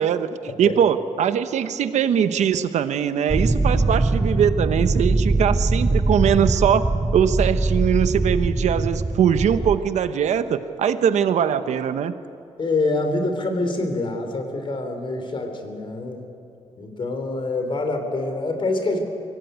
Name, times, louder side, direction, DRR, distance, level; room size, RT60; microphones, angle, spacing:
voice 1, 0.6-12.1, right 8 dB, 90° right, 11 dB, 1.0 m, -21 dB
sound 1, 3.3-9.8, right 2 dB, 15° right, 1.0 m, -22 dB
voice 2, 12.6-16.3 16.8-19.0, left 2 dB, 45° left, 5 dB, 3.5 m, -26 dB
24.0 x 17.5 x 9.3 m, 2.7 s
wide cardioid pair, 120°, 12 cm